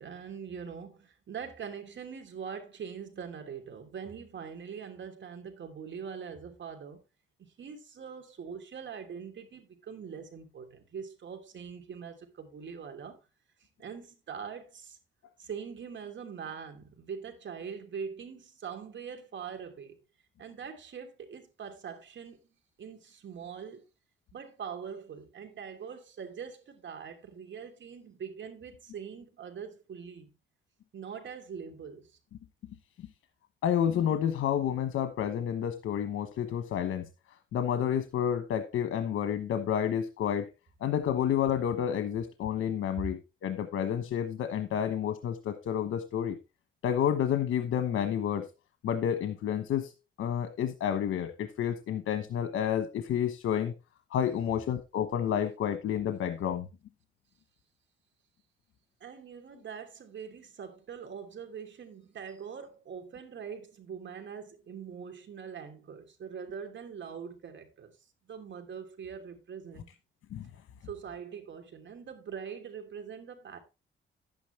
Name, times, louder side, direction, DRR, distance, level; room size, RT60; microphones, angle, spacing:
voice 1, 0.0-7.0 7.4-13.2 13.8-15.0 15.4-20.0 20.4-22.4 22.8-23.8 24.3-30.3 30.9-32.2 43.0-43.1 59.0-67.9 68.2-69.9 70.8-73.6, right 7 dB, 65° right, 2.9 m, -43 dB
voice 2, 33.6-37.0 37.5-40.5 40.8-46.4 46.8-48.5 48.8-49.9 50.2-53.7 54.1-56.7 70.3-70.5, left 9 dB, 90° left, 1.2 m, -30 dB
11.0 x 9.4 x 3.3 m
cardioid pair, 95°, 21 cm